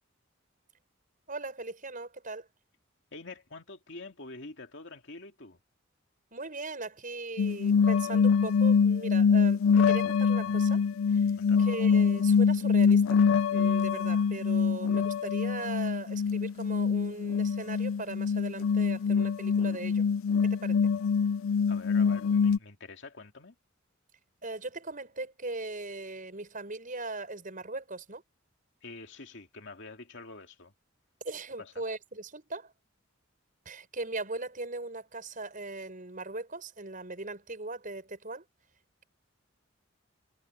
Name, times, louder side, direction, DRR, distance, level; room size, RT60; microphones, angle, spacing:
voice 1, 1.3-2.5 6.3-10.8 11.1-11.2 11.6-13.2 13.5-20.0 20.4-20.8 24.4-28.2 31.2-32.7 33.6-38.4, right 2 dB, 40° right, 6.6 m, -39 dB
voice 2, 3.1-5.6 11.4-11.6 21.7-23.5 28.8-30.7 31.6-31.7, left 3 dB, 60° left, 2.6 m, -46 dB
sound 1, 7.4-22.6, left 6 dB, 80° left, 0.4 m, -25 dB
head